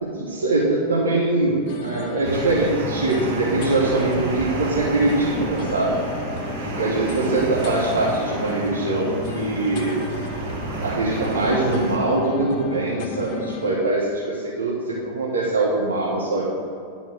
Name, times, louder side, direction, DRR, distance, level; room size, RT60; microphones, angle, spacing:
voice 1, 0.0-6.0 6.8-10.0 10.8-16.5, right 2 dB, 70° right, -5 dB, 1.2 m, -22 dB
sound 1, 1.7-13.8, left 4 dB, 45° left, 0.7 m, -34 dB
sound 2, 2.2-12.0, right 2 dB, 45° right, 1.3 m, -31 dB
10.5 x 3.9 x 6.2 m, 2.4 s
figure-of-eight pair, 90°, 0 cm